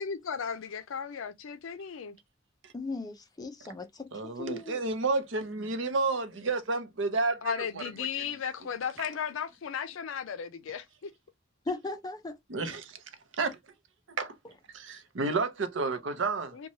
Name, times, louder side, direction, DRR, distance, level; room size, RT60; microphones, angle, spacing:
voice 1, 0.0-2.2 7.4-11.1 16.5-16.7, left 7 dB, 85° left, 0.4 m, -35 dB
voice 2, 2.7-4.8 11.7-12.4, left 3 dB, 20° left, 0.4 m, -37 dB
voice 3, 4.1-7.8 12.5-13.0 13.4-13.6 14.2-14.4 14.7-16.6, right 3 dB, 70° right, 0.6 m, -31 dB
3.0 x 2.2 x 2.6 m
head